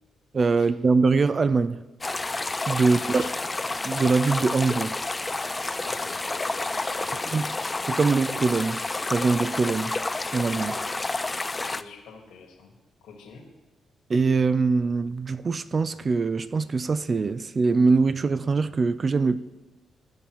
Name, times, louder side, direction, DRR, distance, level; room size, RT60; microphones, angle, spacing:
voice 1, 0.3-1.8 2.7-3.2 3.8-5.0 7.3-7.4 7.9-8.8 9.1-9.9 10.3-10.8 14.1-19.4, right 4 dB, 45° right, 0.4 m, -23 dB
sound 1, 2.0-11.8, left 2 dB, 25° left, 0.3 m, -30 dB
voice 2, 2.9-3.3 5.8-7.5 11.5-12.7 13.0-13.4, left 5 dB, 85° left, 1.6 m, -47 dB
14.5 x 5.4 x 3.0 m
cardioid pair, 65°, 0 cm